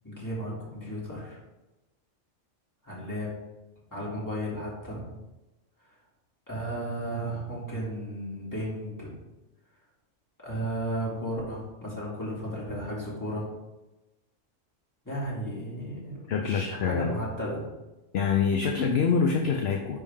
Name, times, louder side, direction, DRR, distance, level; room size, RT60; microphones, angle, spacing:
voice 1, 0.0-1.4 2.8-3.3 3.9-5.1 6.5-9.1 10.4-13.5 15.0-17.6, equal, 15° left, -7 dB, 2.5 m, -34 dB
voice 2, 16.3-17.1 18.1-20.0, left 6 dB, 60° left, 2 dB, 0.8 m, -25 dB
9.8 x 3.5 x 3.6 m, 1.0 s
omnidirectional pair, 1.3 m